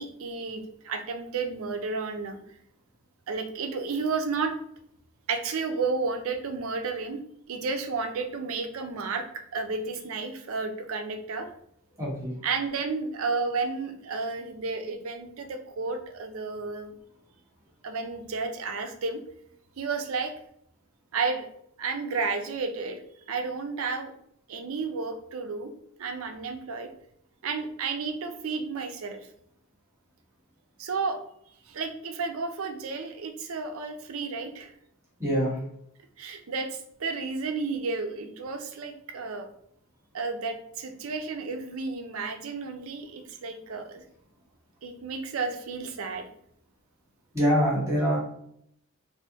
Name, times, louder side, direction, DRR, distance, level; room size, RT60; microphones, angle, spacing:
voice 1, 0.0-2.4 3.3-4.5 5.3-7.2 7.5-9.3 9.5-11.5 12.4-16.9 17.8-19.2 19.8-20.3 21.1-21.5 21.8-23.0 23.3-24.1 24.5-25.7 26.0-26.9 27.4-29.3 30.8-31.2 31.7-34.7 36.2-39.5 40.1-44.1 44.8-46.2, right 4 dB, 70° right, 6 dB, 0.5 m, -32 dB
voice 2, 12.0-12.3 35.2-35.6 47.3-48.2, equal, 15° right, -6 dB, 1.2 m, -24 dB
3.4 x 2.6 x 2.8 m, 0.71 s
head